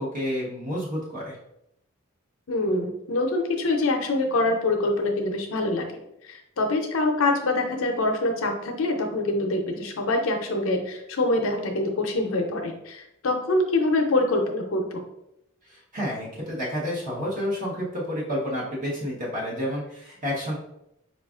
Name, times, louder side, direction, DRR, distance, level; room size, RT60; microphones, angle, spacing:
voice 1, 0.0-1.3 15.7-20.6, equal, 40° right, -6 dB, 0.9 m, -30 dB
voice 2, 2.5-5.8 6.2-15.0, left 2 dB, 65° left, 3 dB, 0.6 m, -25 dB
5.0 x 2.4 x 2.4 m, 0.80 s
head